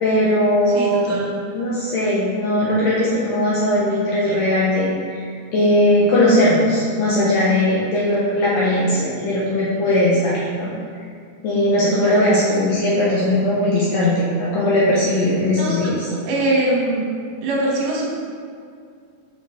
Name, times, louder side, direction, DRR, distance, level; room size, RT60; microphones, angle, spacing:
voice 1, 0.0-1.1 1.5-5.2 5.5-10.7 11.4-16.1, left 1 dB, 70° left, -7 dB, 1.6 m, -19 dB
voice 2, 0.7-1.2 12.0-12.2 15.5-15.8 16.1-17.0 17.4-18.1, right 1 dB, 75° right, -3 dB, 2.4 m, -22 dB
6.0 x 4.8 x 3.4 m, 2.2 s
omnidirectional pair, 3.8 m